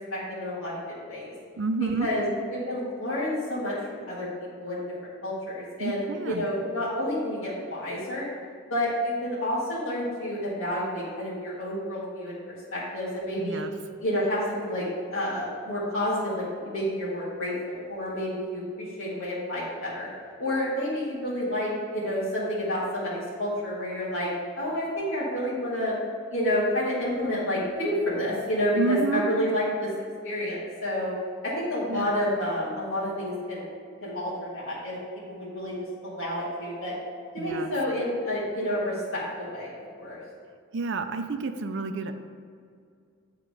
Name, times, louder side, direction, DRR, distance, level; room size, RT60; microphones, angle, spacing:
voice 1, 0.1-0.8 1.1-1.3 2.0-4.3 4.6-4.8 5.2-8.2 8.7-13.6 14.0-14.8 15.1-20.1 20.4-24.3 24.6-25.9 26.3-29.9 30.2-31.1 31.4-33.7 34.0-34.9 35.3-35.7 36.0-36.9 37.3-40.2, left 1 dB, 75° left, -9 dB, 1.7 m, -29 dB
voice 2, 1.6-2.1 5.8-6.5 13.4-13.7 28.8-29.3 31.9-32.1 37.4-37.7 40.7-42.1, right 3 dB, 60° right, 7 dB, 0.5 m, -29 dB
8.1 x 3.8 x 4.8 m, 2.2 s
head